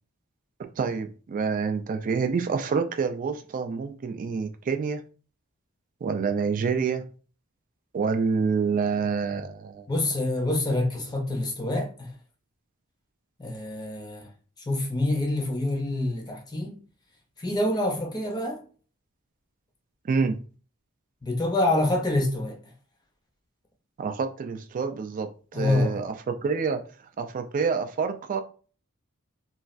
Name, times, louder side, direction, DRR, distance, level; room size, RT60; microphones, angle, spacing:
voice 1, 0.8-5.0 6.0-7.0 7.9-9.8 20.1-20.4 24.0-25.3 25.6-26.8 27.2-28.4, right 5 dB, 40° right, 0.3 m, -27 dB
voice 2, 9.9-12.1 13.4-14.3 14.7-16.8 17.4-18.6 21.2-22.6 25.5-26.0, left 1 dB, 20° left, 0.6 m, -26 dB
3.1 x 2.3 x 2.5 m
head